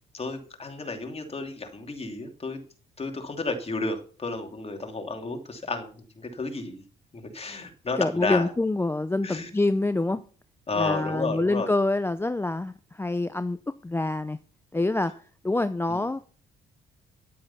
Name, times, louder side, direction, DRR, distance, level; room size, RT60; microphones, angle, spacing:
voice 1, 0.1-2.6 3.0-6.8 7.1-8.5 9.2-9.5 10.7-11.7 15.9-16.0, left 3 dB, 30° left, 5 dB, 2.9 m, -32 dB
voice 2, 8.0-10.2 10.7-13.6 13.8-14.4 14.7-16.2, left 2 dB, 10° left, 12 dB, 0.6 m, -26 dB
11.0 x 8.6 x 5.7 m, 0.41 s
cardioid pair, 90°, 20 cm